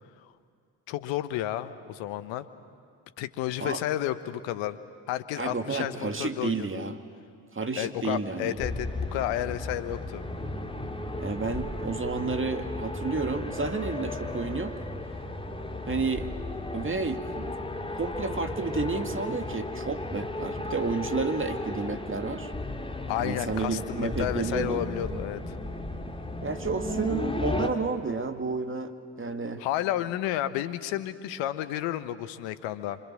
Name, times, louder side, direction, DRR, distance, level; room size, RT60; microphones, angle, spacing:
voice 1, 0.9-2.4 3.2-4.8 5.1-6.9 7.8-10.2 23.1-25.5 29.6-33.0, left 12 dB, 70° left, 12 dB, 1.2 m, -31 dB
voice 2, 5.4-7.0 7.5-8.6 11.2-14.7 15.9-16.3 16.7-17.6 17.9-22.5 23.2-24.8 26.4-29.6, right 4 dB, 25° right, 6 dB, 2.3 m, -31 dB
sound 1, 8.6-27.7, left 2 dB, 10° left, 2.4 m, -35 dB
26.0 x 25.5 x 7.6 m, 2.2 s
hypercardioid pair, 45°, 46 cm